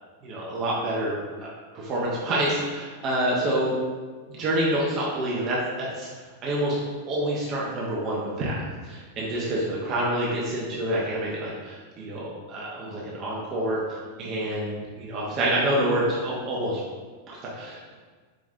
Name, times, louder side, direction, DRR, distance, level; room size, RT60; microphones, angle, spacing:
voice 1, 0.2-1.5 1.7-3.8 4.3-6.1 6.4-8.6 8.8-16.8 17.3-17.9, right 1 dB, 35° right, -5 dB, 0.8 m, -27 dB
5.0 x 3.1 x 2.4 m, 1.4 s
figure-of-eight pair, 90°, 0 cm